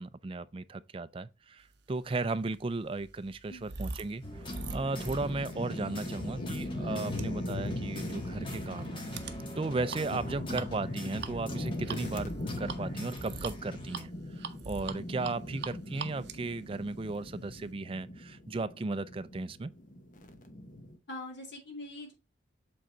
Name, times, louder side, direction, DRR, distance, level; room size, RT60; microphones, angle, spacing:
voice 1, 0.0-9.0 9.6-12.3 12.6-19.7, right 3 dB, 25° right, 0.4 m, -35 dB
sound 1, 2.0-17.7, right 4 dB, 55° right, 0.8 m, -45 dB
sound 2, 4.2-14.0, left 1 dB, 25° left, 1.3 m, -44 dB
sound 3, 4.4-21.0, left 1 dB, 40° left, 1.0 m, -40 dB
voice 2, 21.1-22.1, left 2 dB, 65° left, 2.4 m, -43 dB
7.8 x 3.8 x 4.3 m
head